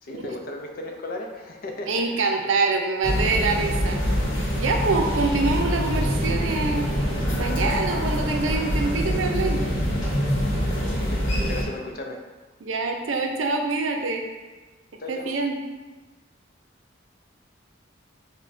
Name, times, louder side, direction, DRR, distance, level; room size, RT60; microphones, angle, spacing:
voice 1, 0.0-2.2 10.7-12.2 15.0-15.3, left 2 dB, 50° left, 2 dB, 0.5 m, -35 dB
voice 2, 1.9-4.0 4.6-9.6 12.6-14.3 15.1-15.6, right 3 dB, 85° right, 3 dB, 0.5 m, -25 dB
sound 1, 3.0-11.6, equal, 85° left, 1.0 m, -25 dB
6.0 x 2.2 x 2.6 m, 1.2 s
head